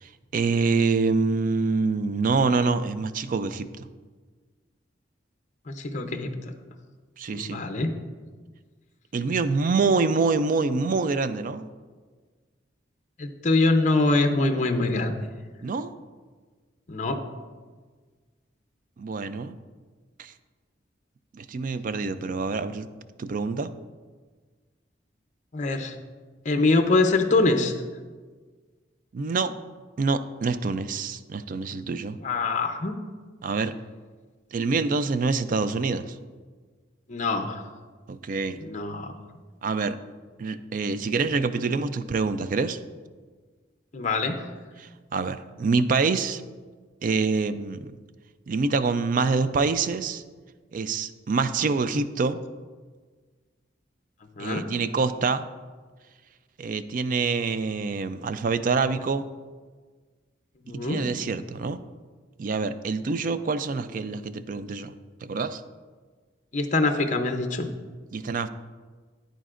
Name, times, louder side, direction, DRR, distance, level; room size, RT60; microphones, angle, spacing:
voice 1, 0.0-3.9 7.2-7.6 9.1-11.7 15.6-16.0 19.0-19.6 20.2-20.3 21.3-22.9 23.2-23.7 29.1-29.5 30.0-32.2 33.4-33.8 34.5-36.1 38.1-38.6 39.6-40.0 40.4-42.8 44.8-46.4 47.0-47.9 48.5-50.2 50.7-52.4 54.4-55.5 56.6-59.3 60.7-61.8 62.4-64.9 65.2-65.6 68.1-68.5, right 4 dB, 50° right, 13 dB, 0.4 m, -26 dB
voice 2, 5.7-6.3 7.3-7.9 13.2-15.1 16.9-17.2 25.5-25.9 26.5-27.7 32.2-32.9 37.1-37.6 38.6-39.1 43.9-44.4 54.4-54.6 60.7-61.0 66.5-67.7, left 3 dB, 40° left, 5 dB, 0.6 m, -24 dB
9.2 x 9.1 x 2.5 m, 1.4 s
head